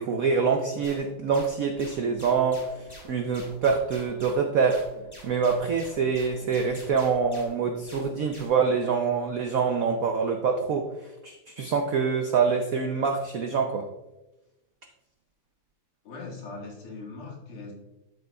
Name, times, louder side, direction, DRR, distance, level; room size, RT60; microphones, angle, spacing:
voice 1, 0.0-4.8 5.2-10.9 11.2-13.9, right 5 dB, 85° right, 4 dB, 0.7 m, -25 dB
sound 1, 0.8-8.7, left 1 dB, 10° left, 1.7 m, -47 dB
voice 2, 16.0-17.7, left 3 dB, 85° left, -2 dB, 2.6 m, -40 dB
12.5 x 6.8 x 2.3 m, 1.0 s
omnidirectional pair, 2.3 m